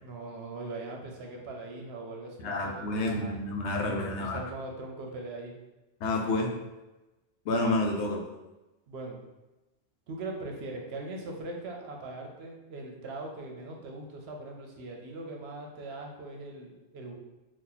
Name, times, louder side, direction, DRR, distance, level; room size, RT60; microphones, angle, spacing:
voice 1, 0.0-3.3 3.8-5.6 8.9-9.2 10.1-17.1, right 2 dB, 65° right, 1 dB, 0.8 m, -40 dB
voice 2, 2.4-4.4 6.0-6.5 7.5-8.2, left 2 dB, 75° left, 1 dB, 0.9 m, -29 dB
2.8 x 2.4 x 3.8 m, 1.0 s
omnidirectional pair, 1.2 m